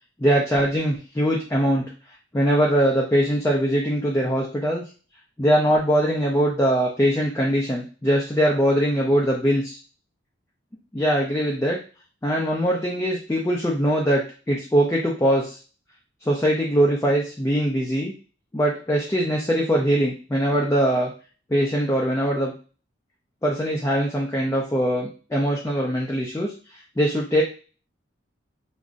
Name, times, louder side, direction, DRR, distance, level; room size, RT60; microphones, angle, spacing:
voice 1, 0.2-1.9 2.3-4.8 5.4-9.8 10.9-11.8 12.2-15.6 16.3-18.1 18.5-21.1 21.5-22.5 23.4-26.5 27.0-27.4, equal, 15° left, -2 dB, 0.4 m, -22 dB
3.6 x 2.1 x 2.5 m, 0.36 s
head